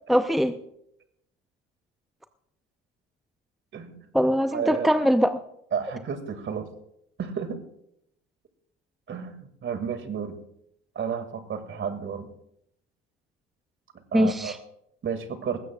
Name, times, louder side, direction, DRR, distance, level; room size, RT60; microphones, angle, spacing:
voice 1, 0.1-0.5 4.1-5.3 14.1-14.6, equal, ahead, 9 dB, 0.7 m, -22 dB
voice 2, 3.7-4.1 4.5-4.9 5.7-6.7 7.2-7.6 9.1-10.4 11.0-12.3 14.1-14.6 15.0-15.6, right 7 dB, 45° right, 9 dB, 2.2 m, -32 dB
20.0 x 15.5 x 2.4 m, 0.77 s
hypercardioid pair, 65°, 29 cm